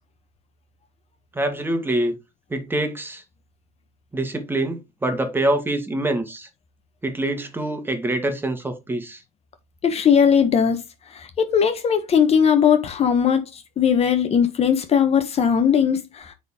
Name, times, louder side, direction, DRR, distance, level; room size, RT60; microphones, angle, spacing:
voice 1, 1.3-2.1 2.5-3.2 4.1-6.5 7.0-9.2, right 1 dB, 10° right, 1.9 m, -25 dB
voice 2, 9.8-10.8 11.1-16.3, left 7 dB, 35° left, 1.2 m, -19 dB
9.3 x 4.2 x 3.7 m
supercardioid pair, 105°, 18 cm